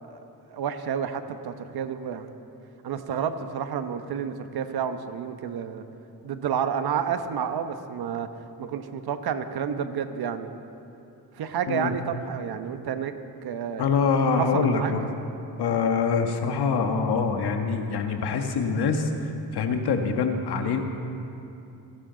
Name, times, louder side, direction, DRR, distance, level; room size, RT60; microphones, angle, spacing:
voice 1, 0.5-2.3 2.8-5.8 6.2-8.3 8.6-10.5 11.3-13.1 13.4-13.8 14.4-14.9, right 7 dB, 65° right, 9 dB, 1.1 m, -30 dB
voice 2, 13.8-15.1 15.6-20.8, left 5 dB, 70° left, 5 dB, 1.5 m, -25 dB
29.0 x 11.5 x 3.9 m, 2.8 s
cardioid pair, 85°, 40 cm